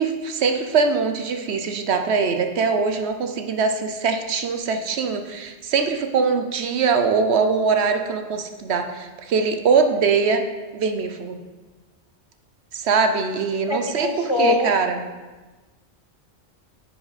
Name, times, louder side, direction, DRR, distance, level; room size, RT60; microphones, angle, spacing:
voice 1, 0.0-10.4 10.7-11.4 12.7-15.0, right 5 dB, 70° right, 6 dB, 1.0 m, -22 dB
voice 2, 13.7-14.7, left 2 dB, 35° left, 2 dB, 0.6 m, -22 dB
9.9 x 6.0 x 4.1 m, 1.2 s
omnidirectional pair, 1.2 m